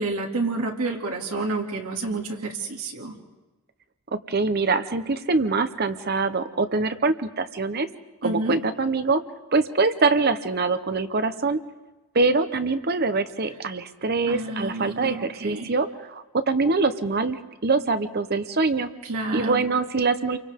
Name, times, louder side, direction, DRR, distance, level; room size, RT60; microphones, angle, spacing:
voice 1, 0.0-3.1 8.2-8.6 14.3-15.7 19.0-19.6, right 2 dB, 85° right, 0 dB, 2.5 m, -29 dB
voice 2, 4.1-7.9 8.2-9.2 9.5-11.6 12.1-18.9 19.3-20.4, right 3 dB, 45° right, 10 dB, 0.9 m, -24 dB
29.5 x 24.5 x 3.7 m, 1.1 s
head